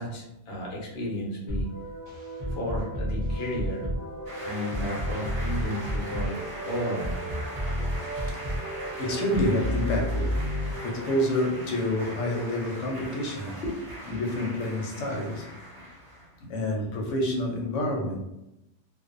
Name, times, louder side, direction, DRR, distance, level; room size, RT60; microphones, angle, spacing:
voice 1, 0.0-1.7 2.5-3.9 4.4-6.4 6.6-7.2 13.6-14.2, left 1 dB, 60° left, -3 dB, 0.9 m, -33 dB
sound 1, 1.5-11.6, equal, 35° right, 0.4 m, -32 dB
sound 2, 4.2-16.3, equal, 20° right, 0.8 m, -41 dB
voice 2, 7.8-10.5 10.8-13.6 14.1-15.6 16.4-18.2, left 1 dB, 85° left, 0 dB, 1.0 m, -29 dB
2.5 x 2.1 x 2.4 m, 0.90 s
omnidirectional pair, 1.2 m